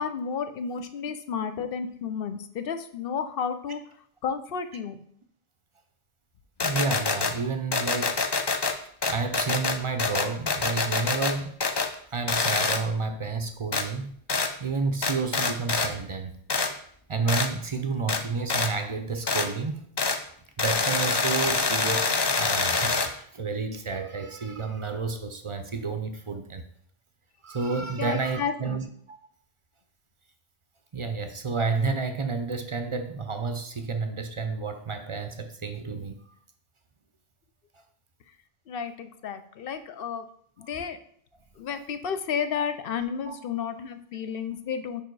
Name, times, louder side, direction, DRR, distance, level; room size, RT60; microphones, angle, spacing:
voice 1, 0.0-3.8 4.2-5.0 28.0-28.8 38.7-40.3 40.6-41.0 41.6-45.0, left 7 dB, 65° left, 0.8 m, -32 dB
sound 1, 6.6-7.3 7.7-8.7 9.0-11.3 11.6-11.9 12.3-12.8 13.7-13.8 14.3-14.5 15.0-15.9 16.5-16.7 17.3-17.5 18.1-18.2 18.5-18.7 19.3-19.5 20.0-20.2 20.6-23.1, left 4 dB, 35° left, 0.4 m, -25 dB
voice 2, 6.6-8.2 9.1-11.5 12.1-14.1 14.6-16.3 17.1-19.8 20.6-26.6 27.4-28.8 29.1-29.2 30.9-36.2 43.3-43.4, right 4 dB, 40° right, 0.5 m, -30 dB
5.2 x 4.7 x 4.6 m
omnidirectional pair, 1.0 m